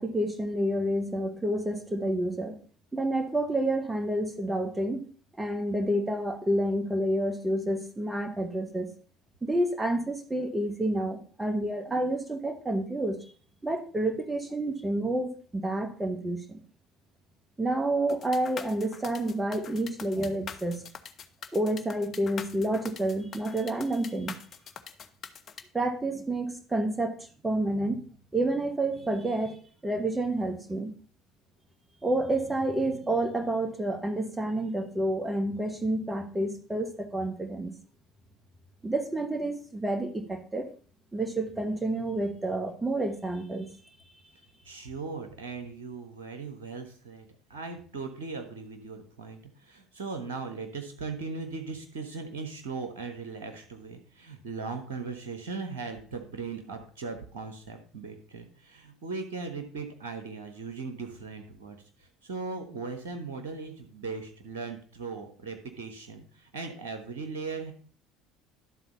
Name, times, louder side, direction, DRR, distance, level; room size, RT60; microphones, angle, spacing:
voice 1, 0.0-2.6 2.9-5.1 5.4-8.9 9.4-13.2 13.6-16.6 17.6-20.8 21.5-24.4 25.7-30.9 32.0-37.7 38.8-40.7 41.1-43.7, right 1 dB, 15° right, 6 dB, 1.6 m, -29 dB
sound 1, 18.1-25.6, left 7 dB, 45° left, 0.7 m, -43 dB
voice 2, 44.6-67.7, right 4 dB, 75° right, 6 dB, 1.3 m, -38 dB
11.0 x 4.0 x 5.3 m, 0.43 s
figure-of-eight pair, 65°, 0 cm